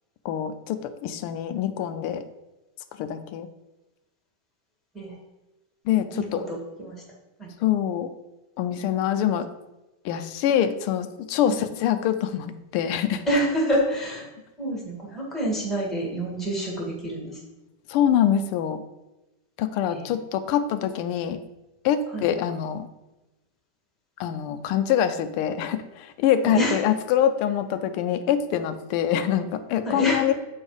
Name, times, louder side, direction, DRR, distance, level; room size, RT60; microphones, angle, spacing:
voice 1, 0.2-2.2 3.0-3.5 5.9-6.4 7.6-8.1 8.6-9.5 10.0-13.2 17.9-18.8 19.6-21.4 21.8-22.9 24.2-30.3, left 10 dB, 90° left, 10 dB, 1.5 m, -25 dB
voice 2, 6.1-7.0 7.4-7.5 11.5-11.6 13.3-14.3 14.6-17.4 19.9-20.0 22.1-22.3 26.4-26.8 29.8-30.2, equal, ahead, -2 dB, 1.6 m, -27 dB
7.9 x 4.5 x 4.8 m, 1.0 s
omnidirectional pair, 2.4 m